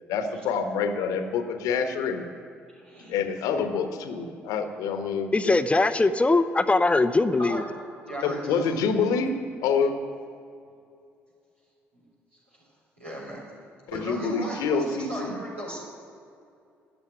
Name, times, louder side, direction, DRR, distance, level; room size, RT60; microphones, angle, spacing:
voice 1, 0.1-2.2 3.1-5.6 8.2-9.3 9.6-9.9 13.9-15.3, left 5 dB, 60° left, 7 dB, 1.2 m, -27 dB
voice 2, 2.7-3.2 7.4-7.6 8.0-8.9 11.9-12.0 13.0-13.4 13.9-15.8, equal, 85° right, -7 dB, 4.1 m, -36 dB
voice 3, 5.3-7.6, left 3 dB, 20° left, 12 dB, 0.7 m, -21 dB
13.5 x 8.4 x 9.4 m, 2.4 s
figure-of-eight pair, 45°, 7 cm